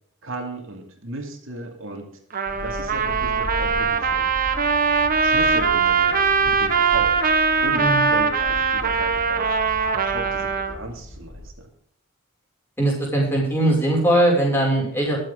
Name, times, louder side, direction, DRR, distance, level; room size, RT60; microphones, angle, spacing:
voice 1, 0.2-2.2 2.6-4.3 5.2-7.2 7.6-9.5 9.9-11.7, right 2 dB, 65° right, 2 dB, 2.5 m, -35 dB
Trumpet, 2.3-10.7, right 5 dB, 45° right, 1.3 m, -21 dB
sound 1, 2.5-11.5, left 1 dB, 75° left, 3.7 m, -37 dB
voice 2, 12.8-15.2, right 1 dB, 10° left, -3 dB, 6.1 m, -20 dB
21.5 x 7.8 x 3.8 m, 0.67 s
head